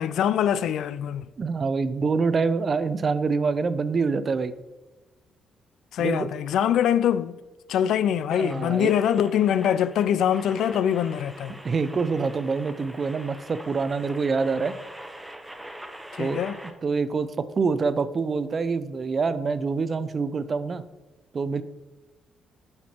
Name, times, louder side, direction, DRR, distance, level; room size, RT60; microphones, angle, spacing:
voice 1, 0.0-1.3 5.9-7.4 7.7-11.6 16.2-16.6, left 9 dB, 75° left, 0.3 m, -23 dB
voice 2, 1.4-4.5 6.0-6.3 8.3-8.9 11.6-14.7 16.2-16.4 16.8-20.8 21.3-21.6, right 4 dB, 40° right, 0.4 m, -26 dB
sound 1, 8.3-16.7, right 1 dB, 5° right, 0.8 m, -43 dB
7.2 x 4.4 x 4.4 m
cardioid pair, 90°, 0 cm